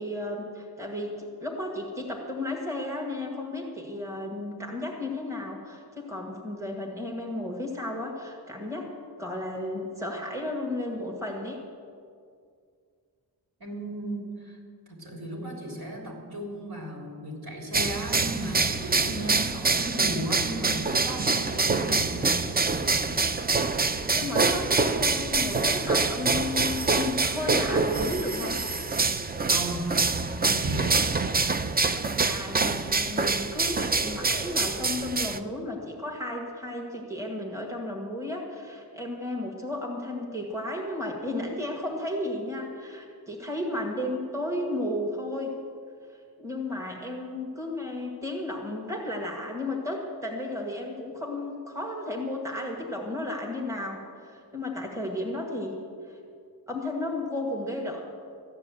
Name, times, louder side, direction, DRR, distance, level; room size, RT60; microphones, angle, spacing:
voice 1, 0.0-8.9 9.2-11.6 24.1-28.6 31.9-45.6 46.4-55.8 56.1-56.2 56.7-58.0, left 1 dB, 5° right, 0 dB, 1.7 m, -33 dB
voice 2, 13.6-14.6 14.9-23.3 29.4-29.9 30.4-31.1, right 1 dB, 60° right, -1 dB, 3.4 m, -35 dB
sound 1, 17.7-35.4, right 4 dB, 25° right, 0.5 m, -26 dB
14.0 x 9.8 x 7.7 m, 2.2 s
wide cardioid pair, 135°, 41 cm